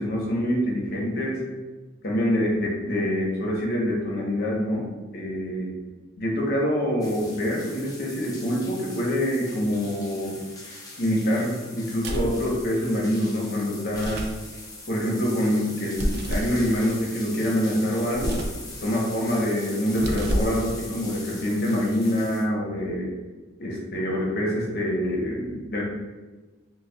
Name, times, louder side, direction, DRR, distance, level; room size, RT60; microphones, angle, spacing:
voice 1, 0.0-1.4 2.0-5.7 6.2-10.4 11.0-14.2 14.9-18.4 18.8-23.1 23.6-25.8, equal, 45° left, -3 dB, 0.9 m, -25 dB
sound 1, 7.0-22.4, left 2 dB, 20° left, 0.6 m, -42 dB
sound 2, 12.0-12.4 13.9-14.4 16.0-16.6 18.1-18.6 19.9-20.6, equal, 50° right, 0.4 m, -28 dB
6.1 x 2.3 x 2.2 m, 1.2 s
head